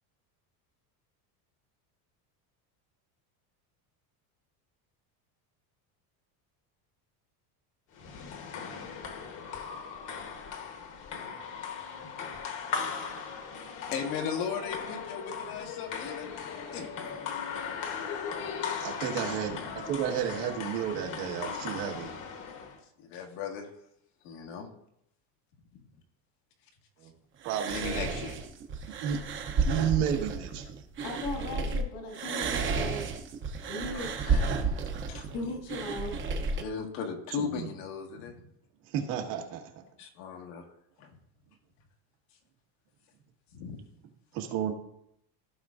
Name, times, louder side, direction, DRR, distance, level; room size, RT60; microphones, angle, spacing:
sound 1, 7.9-22.8, left 6 dB, 45° left, 1.2 m, -38 dB
voice 1, 13.9-16.3 16.7-16.9 23.0-23.7 24.2-24.7 25.7-25.8 27.7-28.4 33.9-34.8 35.1-35.3 36.6-38.4 40.0-40.7 41.0-41.1 43.5-43.8, left 6 dB, 80° left, 2 dB, 1.7 m, -37 dB
voice 2, 18.8-22.1 27.0-27.1 27.4-28.1 29.0-29.2 29.6-30.8 37.4-37.7 38.8-39.7 44.3-44.7, right 9 dB, 80° right, 2 dB, 1.7 m, -32 dB
sound 2, 27.4-31.8 32.1-36.6, right 4 dB, 25° right, 0.7 m, -32 dB
voice 3, 31.0-33.1 33.6-34.1 35.3-36.2, left 2 dB, 65° left, 1 dB, 2.0 m, -37 dB
15.0 x 5.3 x 2.5 m, 0.75 s
cardioid pair, 160°, 45 cm